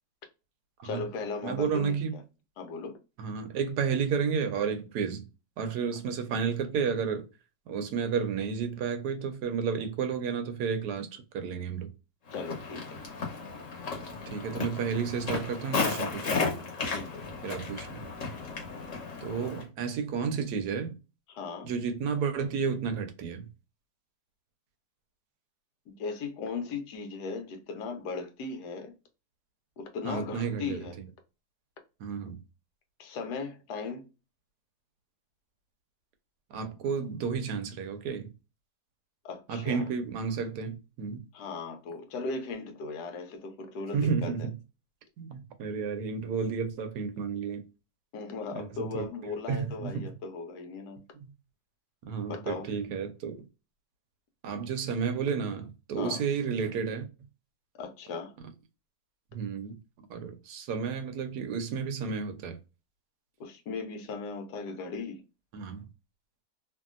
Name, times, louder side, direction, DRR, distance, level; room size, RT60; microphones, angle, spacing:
voice 1, 0.8-2.0 2.6-3.0 12.3-13.0 16.9-17.2 21.3-21.7 25.9-28.9 29.8-30.9 33.0-34.1 39.2-39.9 41.3-44.3 48.1-51.0 52.3-52.7 56.0-56.2 57.7-58.3 63.4-65.2, left 4 dB, 80° left, 1.3 m, -37 dB
voice 2, 1.4-2.2 3.2-5.3 5.6-7.3 7.7-11.9 14.3-16.6 17.4-18.0 19.2-20.9 21.6-23.5 30.0-31.0 32.0-32.4 36.5-38.3 39.5-41.3 43.9-44.5 45.2-47.7 48.5-49.1 49.5-50.1 51.2-51.3 52.0-53.4 54.4-57.1 59.3-59.8 60.1-62.6 65.5-65.9, right 6 dB, 75° right, 1.2 m, -32 dB
Walk footsteps, 12.3-19.6, left 4 dB, 55° left, 1.3 m, -34 dB
3.0 x 2.7 x 2.4 m
omnidirectional pair, 1.7 m